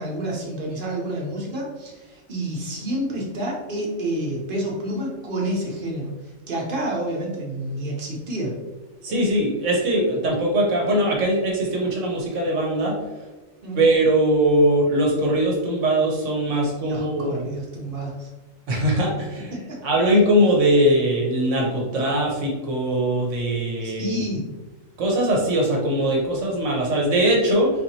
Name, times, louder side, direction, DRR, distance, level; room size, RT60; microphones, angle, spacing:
voice 1, 0.0-8.5 13.6-13.8 16.8-18.3 19.7-19.8 23.8-24.4, right 1 dB, 45° right, -2 dB, 0.9 m, -29 dB
voice 2, 9.0-13.0 13.7-17.4 18.7-19.5 19.8-24.2 25.0-27.7, right 1 dB, 70° right, -1 dB, 1.2 m, -21 dB
4.1 x 2.9 x 2.7 m, 1.1 s
omnidirectional pair, 1.4 m